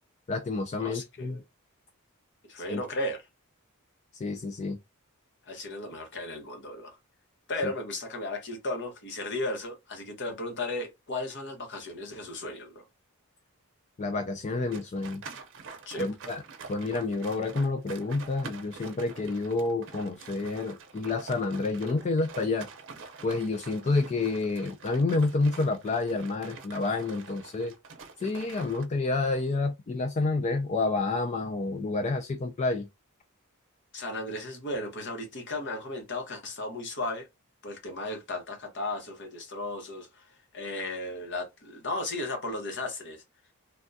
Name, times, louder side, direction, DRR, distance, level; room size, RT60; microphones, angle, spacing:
voice 1, 0.3-1.4 2.6-2.8 4.1-4.8 7.6-7.7 14.0-15.2 16.0-16.4 16.7-22.7 23.2-27.7 28.2-32.9, left 3 dB, 30° left, 0.3 m, -29 dB
voice 2, 0.8-1.4 2.5-3.2 5.5-7.0 7.5-12.8 15.9-16.1 33.9-37.3 37.6-43.2, left 2 dB, 55° left, 1.0 m, -35 dB
sound 1, 14.7-28.8, right 4 dB, 60° right, 0.7 m, -46 dB
3.4 x 2.3 x 2.6 m
head